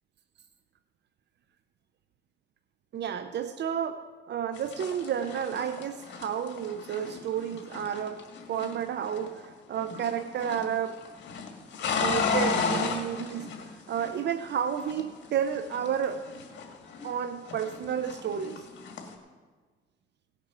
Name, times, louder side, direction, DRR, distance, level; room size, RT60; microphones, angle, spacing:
voice 1, 2.9-11.1 12.0-13.5 13.9-16.2 17.0-18.7, right 8 dB, 60° right, 0.6 m, -31 dB
sound 1, 4.5-9.5 9.7-10.7 11.0-14.5 14.8-17.2 17.5-19.1, left 5 dB, 65° left, 1.9 m, -34 dB
17.5 x 6.7 x 6.0 m
cardioid pair, 90°, 20 cm